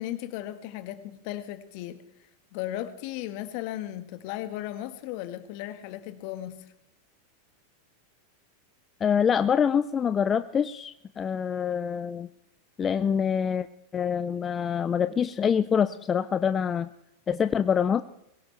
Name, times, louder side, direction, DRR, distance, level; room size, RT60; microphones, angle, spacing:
voice 1, 0.0-2.0 2.5-6.6, left 13 dB, 55° left, 10 dB, 1.4 m, -36 dB
voice 2, 9.0-12.3 12.8-13.7 13.9-16.9 17.3-18.0, left 7 dB, 25° left, 12 dB, 0.5 m, -25 dB
22.5 x 16.5 x 3.3 m, 0.84 s
hypercardioid pair, 95°, 0 cm